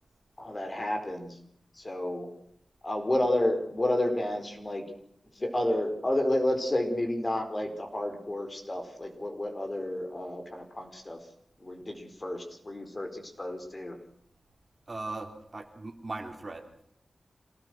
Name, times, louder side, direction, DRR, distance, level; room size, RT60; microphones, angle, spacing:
voice 1, 0.4-1.4 1.8-2.3 2.8-4.8 5.3-11.2 11.6-14.0, left 1 dB, 30° left, 5 dB, 4.7 m, -30 dB
voice 2, 14.9-16.7, right 2 dB, 35° right, 4 dB, 3.9 m, -38 dB
27.5 x 18.5 x 6.3 m, 0.72 s
wide cardioid pair, 95°, 0 cm